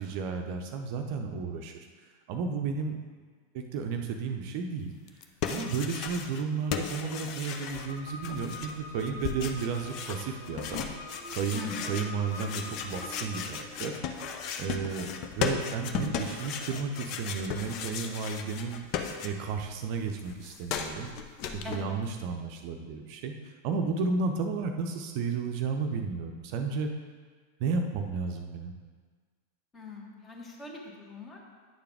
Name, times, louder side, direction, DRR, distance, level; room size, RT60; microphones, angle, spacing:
voice 1, 0.0-1.8 2.3-3.0 3.5-4.9 5.5-10.9 11.3-14.0 14.3-18.8 19.2-21.1 21.5-26.9 27.6-28.7, right 5 dB, 45° right, 4 dB, 0.6 m, -33 dB
sound 1, 5.1-6.4 6.7-19.7 19.9-21.8, left 7 dB, 40° left, 0.7 m, -36 dB
sound 2, 7.9-13.4, left 1 dB, 75° left, 1.8 m, -45 dB
sound 3, 9.7-15.3, right 1 dB, 15° right, 0.9 m, -52 dB
voice 2, 29.7-31.4, left 4 dB, 20° left, 0 dB, 1.6 m, -42 dB
9.5 x 6.8 x 3.5 m, 1.5 s
figure-of-eight pair, 90°, 0 cm